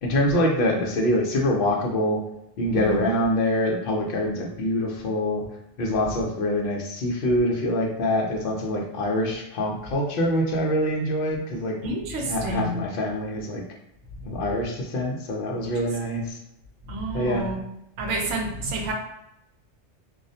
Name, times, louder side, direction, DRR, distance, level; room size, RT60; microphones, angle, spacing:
voice 1, 0.0-2.2 2.6-5.4 5.8-11.8 12.3-13.6 14.2-16.4 17.1-17.5, left 1 dB, 60° left, 0 dB, 0.6 m, -25 dB
voice 2, 2.7-3.1 11.8-12.9 14.1-14.4 16.8-17.6 18.0-18.9, right 1 dB, 80° right, 1 dB, 0.9 m, -29 dB
2.3 x 2.0 x 2.6 m, 0.84 s
omnidirectional pair, 1.2 m